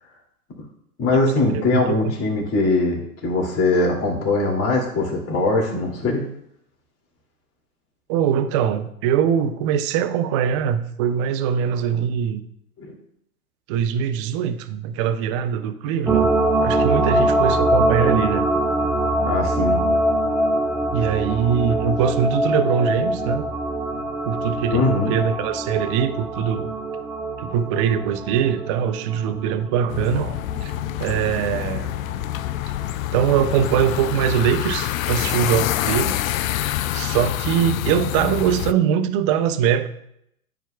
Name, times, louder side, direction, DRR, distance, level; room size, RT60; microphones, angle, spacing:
voice 1, 1.0-6.2 12.8-12.9 19.2-19.8 24.7-25.1, left 2 dB, 30° left, 0 dB, 2.4 m, -21 dB
voice 2, 1.5-2.1 8.1-12.4 13.7-16.3 16.6-18.5 20.9-23.4 24.3-26.7 27.4-30.7 31.0-32.0 33.1-36.2 36.9-39.9, right 8 dB, 25° right, 10 dB, 0.3 m, -22 dB
sound 1, 16.1-31.8 32.1-32.2, right 1 dB, 5° right, 0.8 m, -23 dB
sound 2, 29.9-38.7, left 13 dB, 70° left, 0.5 m, -26 dB
13.0 x 4.7 x 2.2 m, 0.74 s
hypercardioid pair, 110°, 43 cm